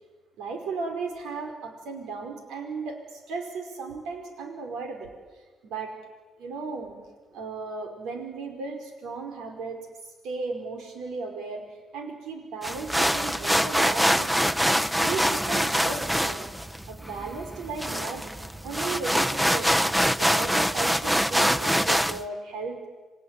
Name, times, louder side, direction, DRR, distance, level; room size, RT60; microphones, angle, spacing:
voice 1, 0.4-6.0 6.4-7.0 7.3-9.9 10.2-11.6 11.9-14.5 14.9-16.5 16.9-18.3 18.6-19.8 20.2-22.9, right 4 dB, 90° right, 4 dB, 5.2 m, -35 dB
sound 1, 12.6-22.2, equal, 5° right, 0.9 m, -24 dB
28.0 x 23.0 x 9.2 m, 1.3 s
cardioid pair, 90°, 0 cm